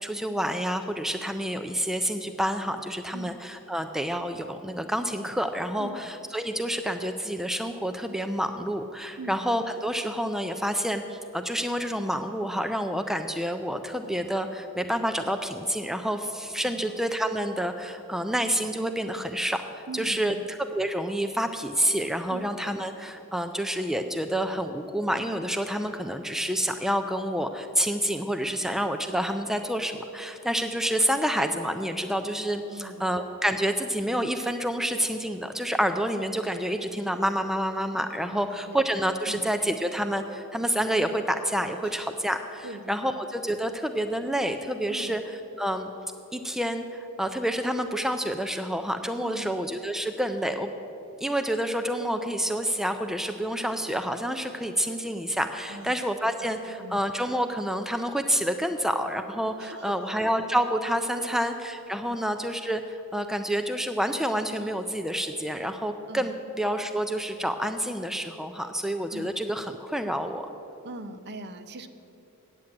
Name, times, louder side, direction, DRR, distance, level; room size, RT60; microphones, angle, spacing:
voice 1, 0.0-45.9 46.3-50.7 51.2-70.5, equal, ahead, 7 dB, 0.3 m, -28 dB
voice 2, 19.9-20.4 22.3-22.4 32.7-33.1 38.3-38.8 39.3-39.4 41.8-41.9 42.6-42.9 44.9-45.2 49.2-49.5 55.7-56.0 56.8-57.0 59.6-59.9 61.2-61.4 62.0-62.2 66.1-66.3 69.1-69.4 70.8-71.9, right 2 dB, 50° right, 10 dB, 0.6 m, -41 dB
9.1 x 7.4 x 8.5 m, 2.9 s
head